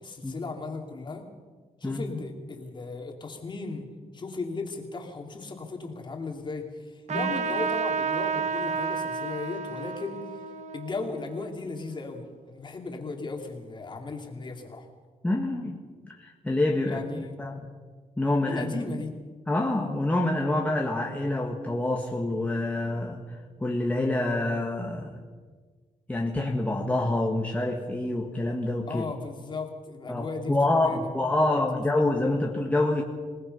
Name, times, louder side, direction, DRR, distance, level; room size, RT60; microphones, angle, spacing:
voice 1, 0.0-1.2 1.8-3.8 4.1-10.2 10.7-14.9 16.8-17.4 18.5-19.1 28.9-30.5 30.8-31.8, left 3 dB, 30° left, 2 dB, 2.9 m, -36 dB
Trumpet, 7.1-12.1, right 5 dB, 55° right, 1.2 m, -31 dB
voice 2, 15.2-17.6 18.2-18.7 19.5-25.1 26.1-29.0 30.1-33.0, left 2 dB, 10° left, -1 dB, 1.7 m, -27 dB
26.5 x 18.5 x 5.5 m, 1.5 s
wide cardioid pair, 145°, 15 cm